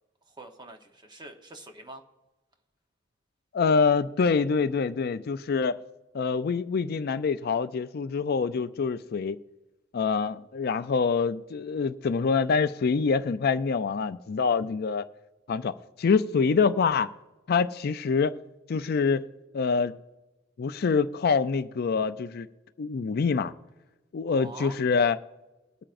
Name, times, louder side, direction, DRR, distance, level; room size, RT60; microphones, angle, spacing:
voice 1, 0.3-2.0 24.3-24.8, right 2 dB, 20° right, 0.9 m, -45 dB
voice 2, 3.5-5.8 6.1-9.4 9.9-15.1 15.5-17.1 17.5-18.4 18.7-19.2 19.5-19.9 20.6-22.5 22.8-23.5 24.1-25.2, left 5 dB, 50° left, 0.4 m, -25 dB
21.5 x 8.8 x 2.5 m
head